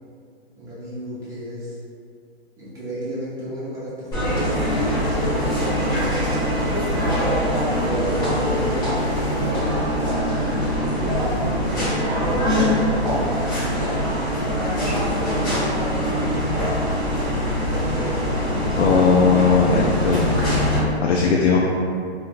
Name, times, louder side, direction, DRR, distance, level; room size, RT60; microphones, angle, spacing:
voice 1, 0.5-1.8 2.6-6.1 7.8-9.6 10.0-10.1 11.2-13.3 14.8-15.7 17.7-18.3, right 1 dB, 10° right, -10 dB, 0.7 m, -32 dB
sound 1, 4.1-20.8, equal, 10° left, 1.2 m, -23 dB
voice 2, 18.8-21.6, left 5 dB, 90° left, -2 dB, 0.5 m, -19 dB
3.2 x 3.0 x 2.5 m, 2.4 s
hypercardioid pair, 145°, 33 cm